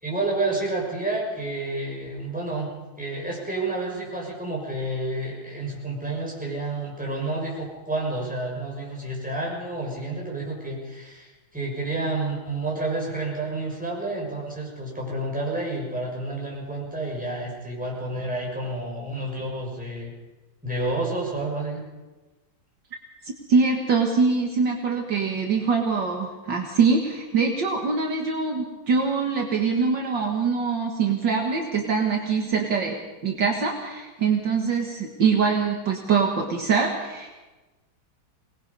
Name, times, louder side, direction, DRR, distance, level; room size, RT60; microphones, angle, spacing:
voice 1, 0.0-2.7 3.0-20.1 20.6-21.8, right 2 dB, 5° right, -3 dB, 6.3 m, -30 dB
voice 2, 23.2-33.0 33.2-37.3, right 5 dB, 60° right, 1 dB, 2.3 m, -23 dB
24.0 x 19.5 x 5.5 m, 1.2 s
omnidirectional pair, 2.2 m